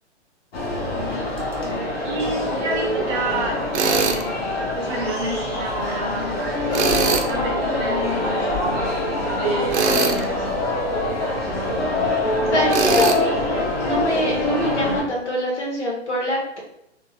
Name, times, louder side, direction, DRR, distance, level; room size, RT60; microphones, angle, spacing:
piano floor at mall (mono), 0.5-15.0, left 2 dB, 55° left, 1.3 m, -24 dB
voice 1, 2.0-6.3 7.3-8.8 9.4-10.5, right 3 dB, 25° right, 0 dB, 0.7 m, -29 dB
Tools, 3.7-4.2 6.7-7.3 9.7-10.2 12.7-13.2, right 5 dB, 75° right, 0.6 m, -21 dB
voice 2, 12.5-13.5 13.8-16.6, equal, 75° left, -1 dB, 1.4 m, -24 dB
3.6 x 2.4 x 3.1 m, 0.77 s
figure-of-eight pair, 120°, 35 cm